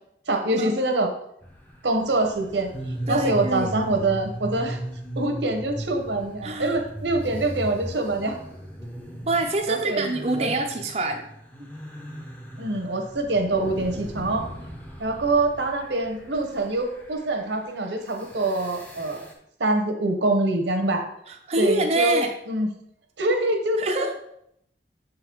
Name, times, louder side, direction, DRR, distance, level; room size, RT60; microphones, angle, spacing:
voice 1, 0.3-1.1 1.8-2.7 3.1-4.8 5.2-8.4 9.7-10.1 10.4-10.5 12.6-14.5 15.0-19.2 19.6-21.1 21.6-22.7 23.2-24.1, right 2 dB, 90° right, 5 dB, 1.0 m, -25 dB
sound 1, 1.4-19.3, right 1 dB, 10° left, 0.8 m, -38 dB
voice 2, 3.1-3.7 6.4-6.8 9.3-11.3 11.6-11.7 21.3-22.3 23.8-24.1, right 2 dB, 35° right, 3 dB, 0.5 m, -25 dB
6.6 x 3.9 x 4.5 m, 0.76 s
head